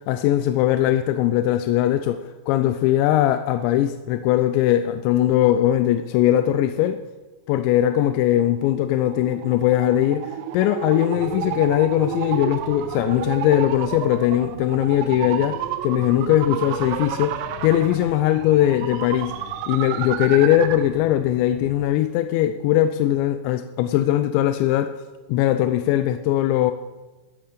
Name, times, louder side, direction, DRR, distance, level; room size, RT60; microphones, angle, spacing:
voice 1, 0.1-7.0 7.5-19.3 19.7-24.9 25.3-26.7, left 12 dB, 90° left, 2.9 m, -20 dB
formant riser, 8.2-20.9, right 11 dB, 90° right, 2.9 m, -31 dB
sound 1, 11.1-21.8, left 5 dB, 55° left, 4.2 m, -43 dB
13.5 x 9.0 x 6.7 m
omnidirectional pair, 5.1 m